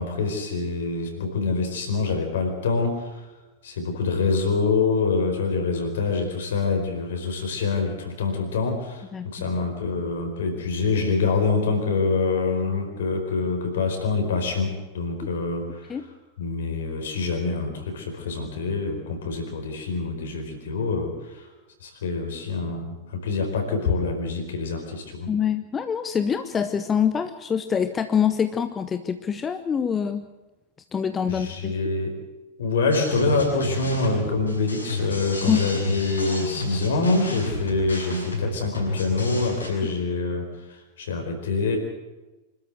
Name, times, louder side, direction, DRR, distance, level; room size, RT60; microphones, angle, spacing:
voice 1, 0.0-3.3 3.6-16.0 16.4-21.5 21.8-25.3 31.3-32.2 32.6-41.8, left 4 dB, 60° left, 5 dB, 4.7 m, -25 dB
voice 2, 25.3-30.3 30.9-31.8 35.4-35.6, left 7 dB, 20° left, 10 dB, 0.9 m, -25 dB
sound 1, 32.9-39.7, left 1 dB, 80° left, 7.1 m, -31 dB
26.0 x 13.0 x 8.2 m, 1.1 s
figure-of-eight pair, 90°, 0 cm